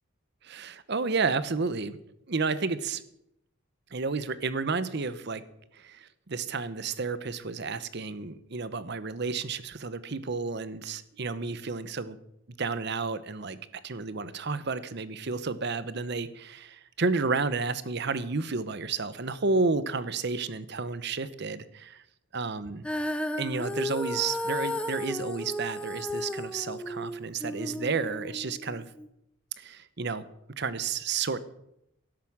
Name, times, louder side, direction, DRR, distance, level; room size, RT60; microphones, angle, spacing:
voice 1, 0.4-2.0 2.3-3.0 3.9-5.4 5.7-12.2 12.6-22.0 22.3-22.9 23.4-28.9 29.6-30.3 30.6-31.4, right 4 dB, 50° right, 15 dB, 0.8 m, -31 dB
Female singing, 22.8-29.1, left 1 dB, 5° left, 0.7 m, -34 dB
12.5 x 11.0 x 6.1 m, 0.80 s
head